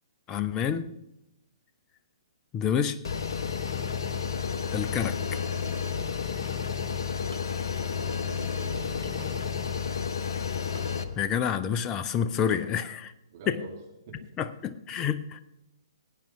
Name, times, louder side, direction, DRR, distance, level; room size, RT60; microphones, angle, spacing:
voice 1, 0.3-1.0 2.5-3.0 4.7-5.2 11.2-13.1 13.5-13.6 14.4-15.5, left 8 dB, 20° left, 13 dB, 0.6 m, -28 dB
sound 1, 3.0-11.0, left 6 dB, 55° left, 0.9 m, -31 dB
sound 2, 5.3-5.7 6.5-6.6 7.3-7.6 9.0-9.4 10.7-11.0 12.5-12.8, right 1 dB, 85° right, 2.1 m, -49 dB
voice 2, 7.7-9.4 13.3-13.7 14.1-14.2, right 4 dB, 40° right, -2 dB, 3.2 m, -44 dB
18.5 x 8.9 x 3.5 m, 0.91 s
figure-of-eight pair, 120°, 3 cm